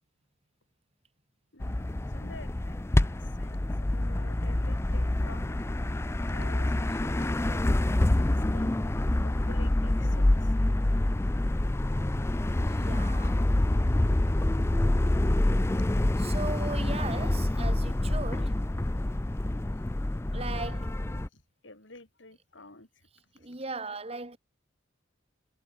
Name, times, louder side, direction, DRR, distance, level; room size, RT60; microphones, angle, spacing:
voice 1, 1.5-5.7 6.3-8.7 9.2-10.5 21.3-22.9 23.4-23.5, left 2 dB, 70° left, 4.4 m, -50 dB
sound 1, 1.6-21.3, left 1 dB, 15° left, 0.4 m, -27 dB
voice 2, 12.6-13.5 16.2-18.7 20.3-21.0 23.4-24.4, right 3 dB, 30° right, 1.9 m, -38 dB
head